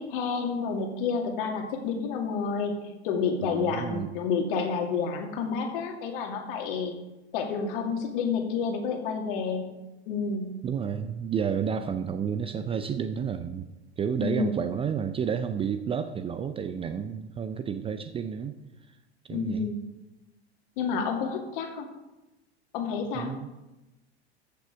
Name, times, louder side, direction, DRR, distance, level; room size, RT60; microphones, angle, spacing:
voice 1, 0.0-2.7 3.0-6.9 7.3-9.7 10.1-10.5 14.2-14.6 19.3-19.8 20.8-21.9 22.7-23.3, left 5 dB, 50° left, 4 dB, 2.2 m, -29 dB
voice 2, 3.4-4.1 10.6-13.7 14.0-18.6 19.3-19.7 23.1-23.5, right 7 dB, 15° right, 10 dB, 0.5 m, -31 dB
14.5 x 6.8 x 5.1 m, 1.0 s
figure-of-eight pair, 85°, 33 cm